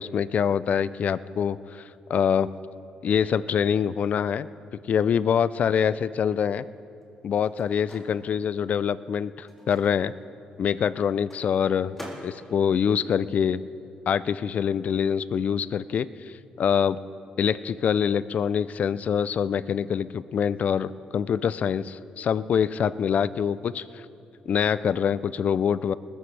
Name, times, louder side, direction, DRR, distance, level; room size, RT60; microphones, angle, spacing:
voice 1, 0.0-1.8 2.1-2.5 3.0-4.5 4.9-6.6 7.2-10.1 10.6-12.0 12.2-13.6 14.1-16.1 16.6-17.0 17.4-23.8 24.5-25.9, left 7 dB, 55° left, 17 dB, 0.4 m, -25 dB
Microwave oven, 6.8-14.2 14.4-16.3, equal, 10° left, 3.9 m, -49 dB
20.5 x 15.0 x 3.3 m, 2.8 s
cardioid pair, 95°, 3 cm